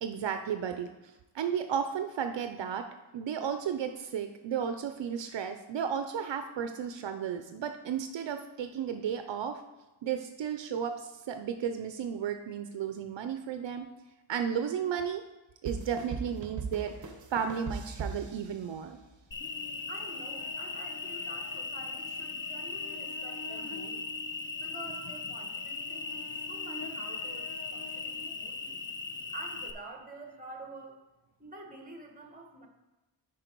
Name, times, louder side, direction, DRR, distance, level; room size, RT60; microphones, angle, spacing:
voice 1, 0.0-0.9 1.3-2.9 3.1-9.6 10.0-13.9 14.3-15.2 15.6-16.9 17.3-19.0, right 8 dB, 70° right, 7 dB, 0.6 m, -33 dB
sound 1, 15.6-19.2, right 4 dB, 40° right, 0.8 m, -39 dB
Cricket, 19.3-29.7, left 4 dB, 25° left, 0.5 m, -38 dB
voice 2, 19.9-24.0 24.5-28.8 29.3-31.0 31.4-32.7, right 2 dB, 20° right, 3 dB, 1.2 m, -47 dB
9.0 x 5.0 x 4.5 m, 1.1 s
wide cardioid pair, 145°, 46 cm